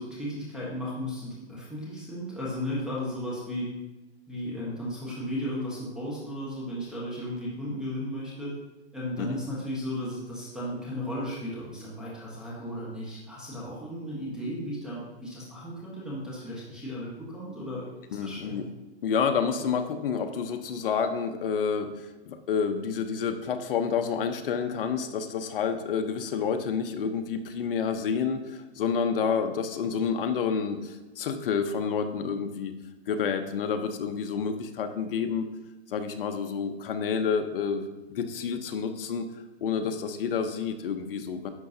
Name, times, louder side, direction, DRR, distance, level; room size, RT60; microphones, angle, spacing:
voice 1, 0.0-3.7 4.3-8.5 8.9-18.6, equal, ahead, -7 dB, 1.2 m, -35 dB
voice 2, 18.1-18.7 19.0-32.7 33.1-35.5 35.9-37.8 38.1-39.3 39.6-41.5, left 6 dB, 50° left, 7 dB, 0.8 m, -29 dB
11.0 x 6.5 x 2.7 m, 1.1 s
hypercardioid pair, 155°, 34 cm